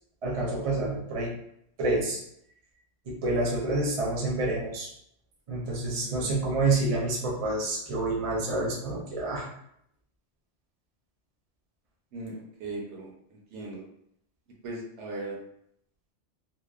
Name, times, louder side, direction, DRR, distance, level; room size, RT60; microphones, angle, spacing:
voice 1, 0.2-1.3 1.8-2.2 3.1-4.9 5.5-9.5, right 2 dB, 40° right, -4 dB, 0.6 m, -28 dB
voice 2, 5.9-6.6 12.1-12.3 12.6-13.8 14.6-15.4, right 2 dB, 80° right, -1 dB, 1.0 m, -39 dB
2.8 x 2.0 x 2.3 m, 0.73 s
omnidirectional pair, 1.2 m